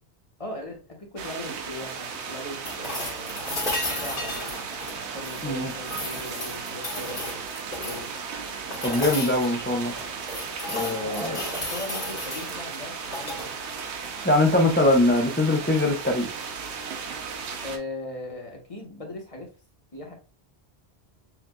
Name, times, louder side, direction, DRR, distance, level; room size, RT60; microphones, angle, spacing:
voice 1, 0.4-3.4 3.9-4.7 5.1-8.1 11.0-13.5 17.6-19.5 19.9-20.1, left 1 dB, 30° left, 0 dB, 1.3 m, -39 dB
sound 1, 1.2-17.8, right 5 dB, 80° right, 1.1 m, -36 dB
sound 2, 2.6-5.5 5.8-8.1 8.7-9.5 10.0-12.5 13.0-13.5 15.5-15.6, left 1 dB, 50° left, 1.9 m, -34 dB
voice 2, 8.8-9.9 10.7-11.4 14.2-16.3, left 2 dB, 10° left, 2 dB, 0.7 m, -22 dB
6.9 x 2.6 x 2.3 m, 0.33 s
omnidirectional pair, 1.1 m